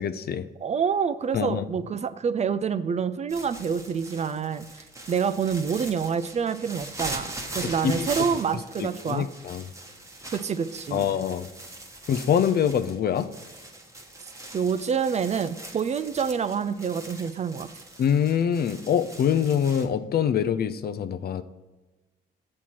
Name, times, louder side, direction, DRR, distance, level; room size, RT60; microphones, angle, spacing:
voice 1, 0.0-0.5 1.3-1.6 7.6-8.1 8.8-9.6 10.9-11.5 12.1-13.3 18.0-21.4, left 8 dB, 55° left, 12 dB, 0.5 m, -25 dB
voice 2, 0.6-9.3 10.3-11.1 14.5-17.7, right 6 dB, 35° right, 13 dB, 0.4 m, -27 dB
sound 1, 3.3-19.9, right 1 dB, 15° right, 1.0 m, -41 dB
7.3 x 4.3 x 4.6 m, 1.2 s
cardioid pair, 90°, 20 cm